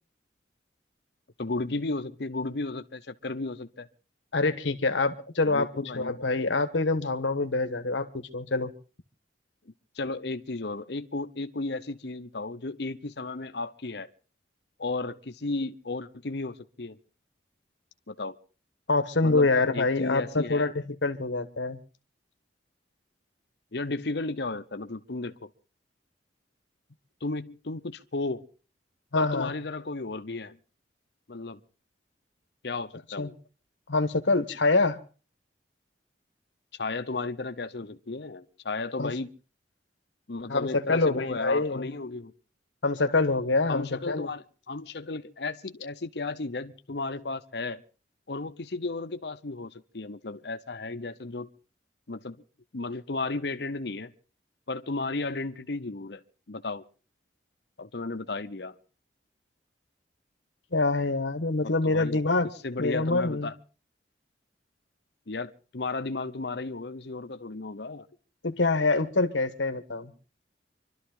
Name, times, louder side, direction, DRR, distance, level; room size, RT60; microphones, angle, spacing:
voice 1, 1.4-3.9 5.4-6.2 9.9-14.1 14.8-17.0 18.1-18.4 19.2-20.7 23.7-25.5 27.2-28.4 29.1-30.6 31.3-31.6 32.6-33.3 36.8-39.3 40.3-42.3 43.7-47.8 48.3-51.5 52.1-52.4 52.7-54.1 54.7-56.2 56.5-56.8 57.8-58.7 61.8-62.2 62.6-63.5 65.3-68.1, left 3 dB, 60° left, 0.9 m, -34 dB
voice 2, 4.3-8.7 18.9-21.8 29.1-29.5 33.2-33.3 33.9-35.0 39.0-39.1 40.5-41.9 42.8-44.3 60.7-62.5 62.8-63.5 68.4-70.1, left 3 dB, 80° left, 1.3 m, -26 dB
25.5 x 12.5 x 3.8 m
head